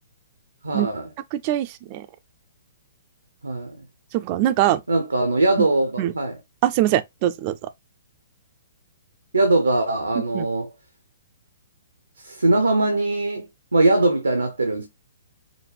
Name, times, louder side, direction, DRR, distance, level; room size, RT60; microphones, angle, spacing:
voice 1, 0.6-1.1 3.4-3.8 4.9-6.4 9.3-10.7 12.2-14.9, right 2 dB, 80° right, 0.9 m, -21 dB
voice 2, 1.3-2.1 4.1-4.8 6.0-6.1 6.6-7.5 10.3-10.5, right 13 dB, 35° right, 0.5 m, -22 dB
5.2 x 2.3 x 3.2 m
figure-of-eight pair, 120°, 0 cm